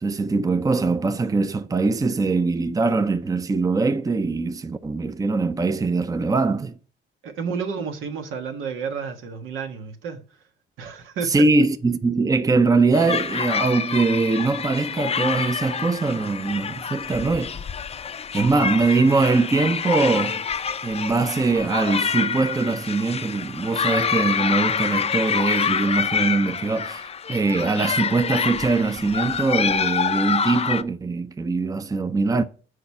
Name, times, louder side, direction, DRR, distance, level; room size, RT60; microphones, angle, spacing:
voice 1, 0.0-6.7 11.2-17.6 18.3-20.4 20.8-32.4, right 3 dB, 15° right, 0.6 m, -22 dB
voice 2, 7.2-10.2 10.8-11.5, right 6 dB, 85° right, 1.4 m, -31 dB
sound 1, 12.9-30.8, left 6 dB, 30° left, 0.5 m, -27 dB
6.6 x 4.8 x 5.4 m
cardioid pair, 90°, 20 cm